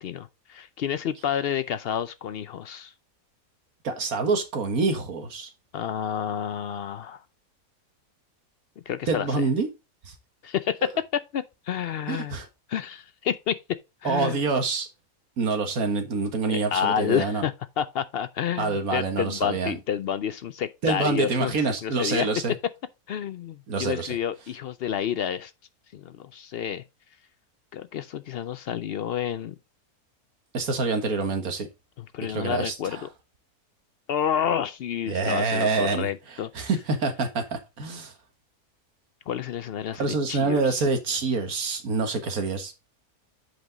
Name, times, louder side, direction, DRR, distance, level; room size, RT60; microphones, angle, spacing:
voice 1, 0.0-2.9 5.7-7.2 8.9-9.5 10.4-12.4 12.7-13.6 14.0-14.4 16.5-22.3 23.1-25.5 25.9-26.8 27.7-29.5 32.0-33.1 34.1-36.7 39.3-40.9, left 9 dB, 70° left, 0.5 m, -29 dB
voice 2, 3.8-5.5 9.1-9.7 12.1-12.5 14.0-14.9 15.4-17.4 18.6-19.8 20.8-22.5 23.7-24.2 30.5-31.7 32.3-33.0 35.1-38.1 40.0-42.7, right 4 dB, 70° right, 1.9 m, -26 dB
7.9 x 5.2 x 3.9 m
omnidirectional pair, 1.6 m